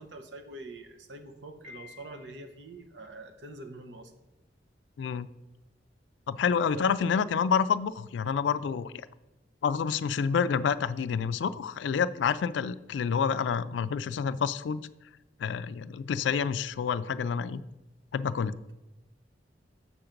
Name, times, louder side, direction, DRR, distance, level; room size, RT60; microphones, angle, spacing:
voice 1, 0.0-4.1 6.7-7.1, right 2 dB, 75° right, 7 dB, 0.8 m, -44 dB
Piano, 1.6-2.7, left 6 dB, 45° right, 2.6 m, -51 dB
voice 2, 6.3-8.9 9.6-14.8 15.4-17.6 18.1-18.5, left 6 dB, 75° left, 15 dB, 0.3 m, -28 dB
7.0 x 5.8 x 5.1 m, 1.0 s
head